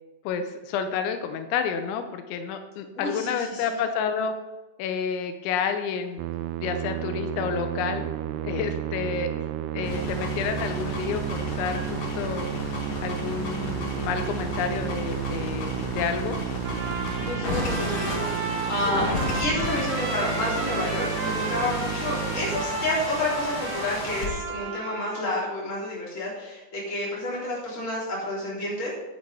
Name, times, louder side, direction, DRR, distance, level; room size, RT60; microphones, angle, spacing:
voice 1, 0.3-4.3 4.8-6.2 6.6-8.1 8.4-9.3 9.7-12.5 13.0-16.4, left 6 dB, 85° left, 7 dB, 3.1 m, -30 dB
voice 2, 2.9-3.6 17.2-19.0 19.3-28.9, left 1 dB, 20° left, -6 dB, 3.2 m, -30 dB
Musical instrument, 6.2-23.3, right 11 dB, 90° right, 2.3 m, -32 dB
sound 1, 9.8-24.3, left 3 dB, 55° left, 1.7 m, -34 dB
Trumpet, 16.6-25.4, right 4 dB, 65° right, 2.8 m, -34 dB
10.5 x 9.9 x 4.0 m, 1.2 s
omnidirectional pair, 5.3 m